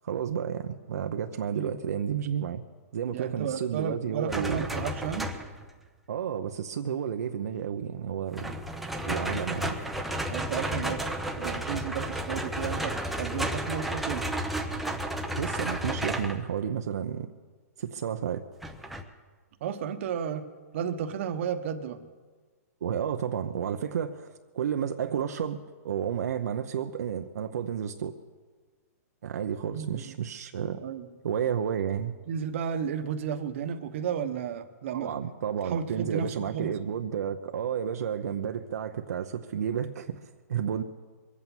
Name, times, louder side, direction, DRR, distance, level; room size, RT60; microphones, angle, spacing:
voice 1, 0.0-2.6 2.9-4.7 6.1-8.5 9.0-9.8 15.4-17.3 17.8-18.4 22.8-25.6 25.8-28.2 29.2-30.8 31.2-32.2 34.9-40.2 40.5-40.8, right 8 dB, 70° right, 5 dB, 0.7 m, -31 dB
voice 2, 3.1-5.3 10.3-11.0 11.4-14.3 19.6-20.5 20.7-22.0 29.7-30.1 30.8-31.1 32.3-35.1 35.6-36.8, right 7 dB, 45° right, 8 dB, 1.1 m, -33 dB
sound 1, 4.3-5.7 8.3-16.4 18.6-19.0, right 1 dB, ahead, 0.6 m, -32 dB
22.5 x 8.3 x 7.2 m, 1.4 s
hypercardioid pair, 160°, 9 cm